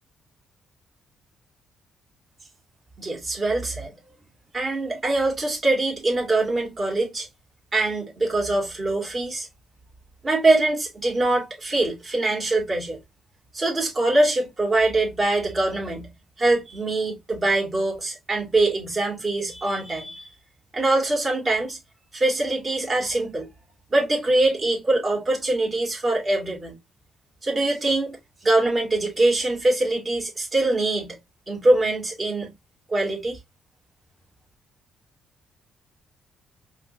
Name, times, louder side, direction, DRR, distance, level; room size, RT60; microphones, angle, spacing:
voice 1, 3.0-3.9 4.5-7.3 7.7-9.5 10.2-13.0 13.5-16.1 16.4-20.3 20.7-21.8 22.1-23.5 23.9-26.8 27.4-28.2 28.4-31.2 31.5-32.5 32.9-33.4, right 2 dB, 35° right, 2.9 m, -23 dB
4.9 x 3.4 x 2.7 m
cardioid pair, 90°, 0 cm